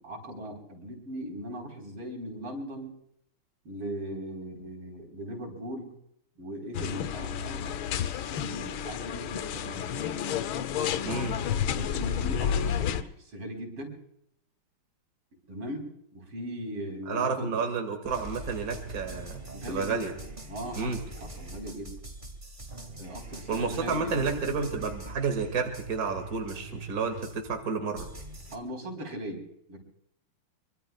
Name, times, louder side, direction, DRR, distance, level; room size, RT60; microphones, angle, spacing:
voice 1, 0.0-2.9 3.7-6.0 6.4-10.0 11.7-14.0 15.5-17.6 19.5-20.0 20.5-22.0 23.0-24.5 28.5-29.8, equal, 90° right, 1 dB, 5.3 m, -39 dB
sound 1, 6.7-13.0, left 8 dB, 75° left, 1.6 m, -30 dB
voice 2, 11.0-11.3 17.1-19.4 19.7-20.1 20.7-21.0 23.5-28.1, right 5 dB, 40° right, 4 dB, 2.5 m, -30 dB
sound 2, 18.1-27.6 28.0-28.6, right 2 dB, 20° right, 2.1 m, -43 dB
25.0 x 24.0 x 2.4 m, 0.73 s
omnidirectional pair, 2.4 m